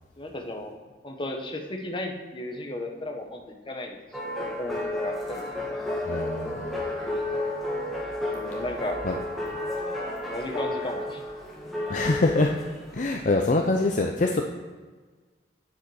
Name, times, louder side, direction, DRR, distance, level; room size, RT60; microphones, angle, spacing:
voice 1, 0.2-0.8 1.0-4.0 4.2-5.4 8.3-9.0 10.3-11.2 13.1-13.2, left 1 dB, 30° left, 3 dB, 1.1 m, -35 dB
sound 1, 4.1-13.3, left 1 dB, ahead, 2.0 m, -32 dB
voice 2, 6.1-6.8 9.0-9.2 11.9-12.5 12.9-14.4, left 2 dB, 45° left, 3 dB, 0.6 m, -24 dB
9.3 x 7.3 x 4.8 m, 1.4 s
head